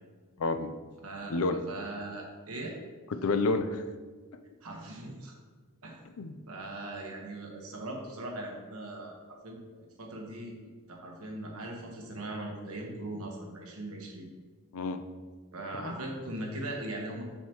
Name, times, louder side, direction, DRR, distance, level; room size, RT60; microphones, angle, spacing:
voice 1, 0.4-0.7 1.3-1.6 3.1-3.8 6.2-6.4 14.7-15.0 15.8-15.9, left 3 dB, 70° left, 9 dB, 0.5 m, -29 dB
voice 2, 1.7-2.7 4.6-5.3 5.8-6.0 6.5-9.1 9.4-10.5 10.9-14.3 15.5-17.2, right 1 dB, 75° right, 0 dB, 1.3 m, -39 dB
7.1 x 6.6 x 3.0 m, 1.5 s
head